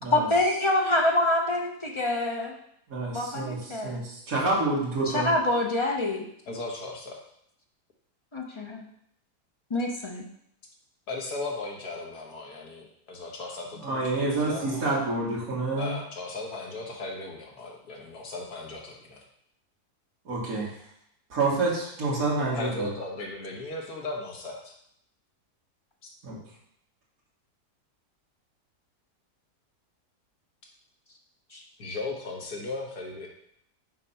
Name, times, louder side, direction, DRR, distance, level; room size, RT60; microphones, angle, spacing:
voice 1, 0.1-2.5 3.1-4.0 5.1-6.2 8.3-8.8 9.7-10.2 31.5-31.6, left 2 dB, 35° left, 0 dB, 0.4 m, -26 dB
voice 2, 2.9-3.6 3.8-5.3 13.8-16.0 20.3-20.7 21.3-22.9 26.2-26.4, right 3 dB, 60° right, -6 dB, 2.4 m, -28 dB
voice 3, 6.5-7.2 11.1-14.9 15.7-19.2 22.5-24.7 31.8-33.3, left 2 dB, 70° left, 0 dB, 1.8 m, -37 dB
5.9 x 4.1 x 5.6 m, 0.71 s
omnidirectional pair, 1.7 m